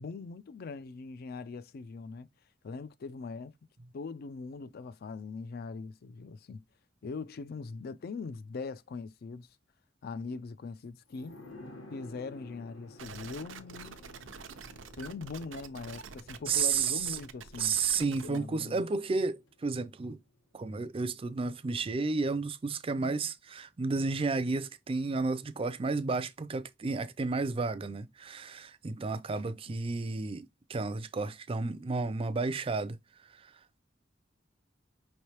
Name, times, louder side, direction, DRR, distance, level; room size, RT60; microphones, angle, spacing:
voice 1, 0.0-2.3 2.6-3.5 3.9-6.6 7.0-9.5 10.0-11.4 11.9-14.0 15.0-17.8 18.1-18.9 29.7-29.8, left 4 dB, 55° left, 0.4 m, -41 dB
sound 1, 11.1-20.4 20.7-20.8, left 2 dB, 85° left, 1.3 m, -53 dB
sound 2, 13.0-18.4, right 5 dB, 90° right, 0.6 m, -47 dB
voice 2, 16.5-17.2 17.6-20.2 20.5-33.0 33.3-33.5, right 4 dB, 30° right, 0.4 m, -32 dB
5.3 x 3.3 x 2.9 m
head